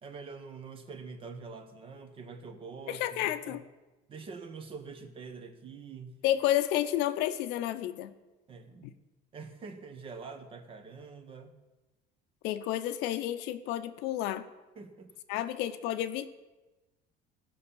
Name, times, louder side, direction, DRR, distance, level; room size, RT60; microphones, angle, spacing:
voice 1, 0.0-3.6 4.1-6.2 8.5-9.0 9.3-11.6 14.7-15.2, right 4 dB, 30° right, 8 dB, 1.1 m, -45 dB
voice 2, 2.9-3.6 6.2-8.1 12.4-14.5 15.3-16.3, left 12 dB, 85° left, 10 dB, 0.8 m, -30 dB
16.5 x 5.7 x 7.0 m, 1.1 s
cardioid pair, 165°, 17 cm